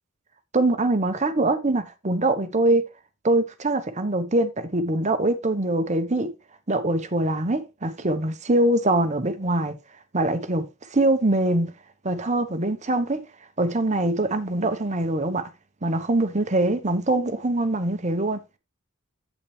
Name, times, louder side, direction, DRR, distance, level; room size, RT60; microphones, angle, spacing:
voice 1, 0.5-2.9 3.2-6.3 6.7-9.7 10.1-11.7 12.0-13.2 13.6-15.5 15.8-18.4, right 2 dB, 35° right, 1.0 m, -23 dB
8.5 x 8.3 x 3.2 m
head